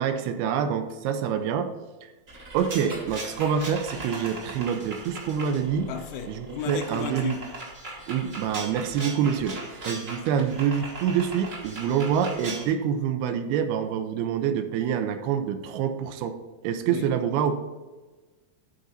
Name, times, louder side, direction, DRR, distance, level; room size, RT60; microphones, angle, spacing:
voice 1, 0.0-1.7 2.5-5.9 6.3-7.4 8.1-9.6 9.9-16.3 16.6-17.6, right 8 dB, 85° right, 2.7 m, -26 dB
sound 1, 2.3-12.6, right 2 dB, 50° right, 0.9 m, -39 dB
voice 2, 5.9-7.5 16.9-17.1, left 8 dB, 80° left, 2.7 m, -35 dB
11.0 x 4.0 x 5.6 m
omnidirectional pair, 4.5 m